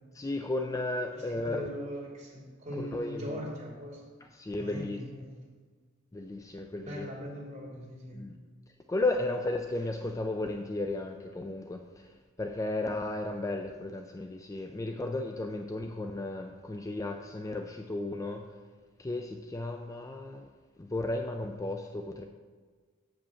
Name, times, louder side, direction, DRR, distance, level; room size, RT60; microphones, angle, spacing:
voice 1, 0.1-1.6 2.8-3.4 4.2-5.0 6.1-7.1 8.1-8.4 8.9-18.5 19.0-20.5 20.8-22.2, left 2 dB, 15° left, 5 dB, 0.4 m, -34 dB
voice 2, 1.1-4.0 4.5-5.4 6.8-8.3, equal, 35° right, -4 dB, 2.8 m, -41 dB
7.4 x 5.2 x 6.9 m, 1.5 s
head